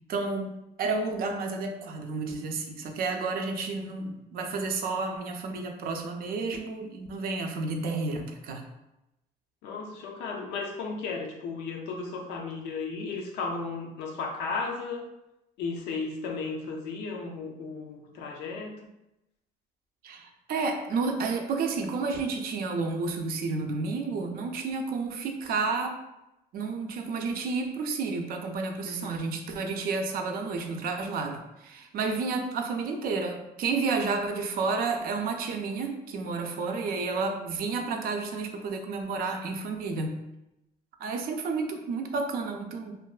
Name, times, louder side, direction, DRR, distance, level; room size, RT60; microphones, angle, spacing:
voice 1, 0.1-8.6 20.0-26.0 26.5-40.2 41.0-43.0, right 4 dB, 60° right, 4 dB, 0.4 m, -31 dB
voice 2, 9.6-15.0 15.6-18.8 28.8-29.3, left 4 dB, 85° left, 2 dB, 0.5 m, -35 dB
2.5 x 2.2 x 2.3 m, 0.91 s
cardioid pair, 110°, 17 cm